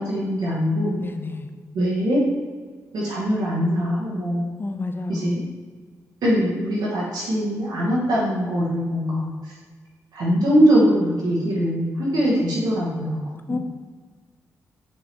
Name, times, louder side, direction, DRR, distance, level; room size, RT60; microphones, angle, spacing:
voice 1, 0.0-1.0 1.7-2.2 2.9-4.4 5.1-5.4 6.2-9.5 10.1-13.2 13.5-13.6, equal, 75° right, -6 dB, 1.1 m, -22 dB
voice 2, 1.0-1.5 4.6-5.4 13.5-13.6, left 3 dB, 30° left, 7 dB, 0.5 m, -30 dB
5.3 x 2.8 x 3.3 m, 1.5 s
supercardioid pair, 45°, 7 cm